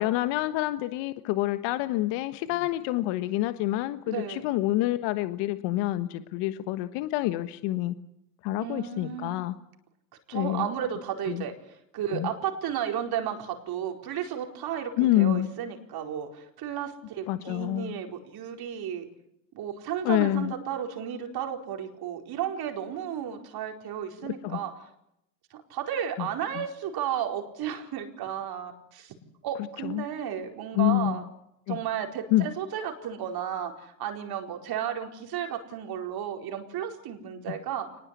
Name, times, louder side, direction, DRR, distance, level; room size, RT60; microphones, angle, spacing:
voice 1, 0.0-7.9 8.4-9.5 10.3-10.7 11.3-11.4 12.1-12.3 15.0-15.5 17.3-17.9 20.0-20.5 24.2-24.6 26.2-26.3 29.8-30.0 30.7-31.2 31.7-31.8 32.3-32.5 37.5-37.6, left 15 dB, 60° left, 11 dB, 1.4 m, -27 dB
voice 2, 4.0-4.4 8.6-9.4 10.3-19.1 19.5-24.7 25.5-29.1 29.4-31.2 31.7-37.9, right 9 dB, 50° right, 4 dB, 4.6 m, -33 dB
24.0 x 20.0 x 8.4 m, 0.79 s
hypercardioid pair, 90°, 47 cm